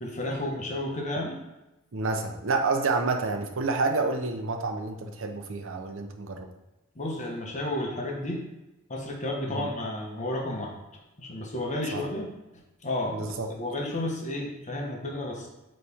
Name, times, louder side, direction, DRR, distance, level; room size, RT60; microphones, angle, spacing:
voice 1, 0.0-1.4 6.9-8.4 8.9-10.7 11.2-12.3 12.8-13.3 13.6-15.5, left 1 dB, 35° left, 0 dB, 1.1 m, -32 dB
voice 2, 1.9-6.5 9.5-9.7 11.9-12.0 13.1-13.5, right 3 dB, 65° right, 5 dB, 0.7 m, -29 dB
8.5 x 3.3 x 3.6 m, 1.0 s
head